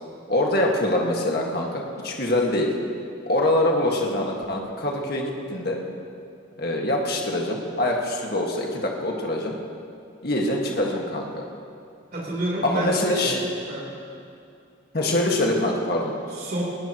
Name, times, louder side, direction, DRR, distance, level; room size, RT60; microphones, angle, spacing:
voice 1, 0.3-2.7 3.2-5.8 6.6-9.6 10.2-11.4 12.6-13.4 14.9-16.1, left 1 dB, 50° left, -1 dB, 1.8 m, -24 dB
voice 2, 12.1-13.8 16.3-16.6, right 1 dB, 45° right, -5 dB, 3.6 m, -29 dB
19.5 x 19.5 x 3.0 m, 2.5 s
head